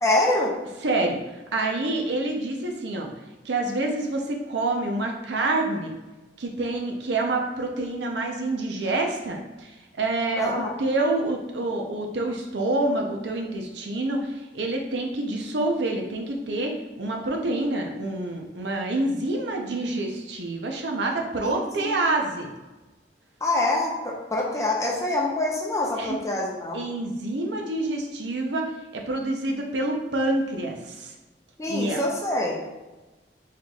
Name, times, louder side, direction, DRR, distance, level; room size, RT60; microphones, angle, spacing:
voice 1, 0.0-0.5 10.4-10.7 21.4-22.0 23.4-26.8 31.6-32.5, left 2 dB, 15° left, -2 dB, 0.7 m, -25 dB
voice 2, 0.8-3.1 3.4-5.9 6.4-22.5 26.0-26.2 26.7-31.1 31.7-32.0, right 2 dB, 85° right, 2 dB, 0.7 m, -27 dB
4.4 x 2.4 x 4.0 m, 1.1 s
head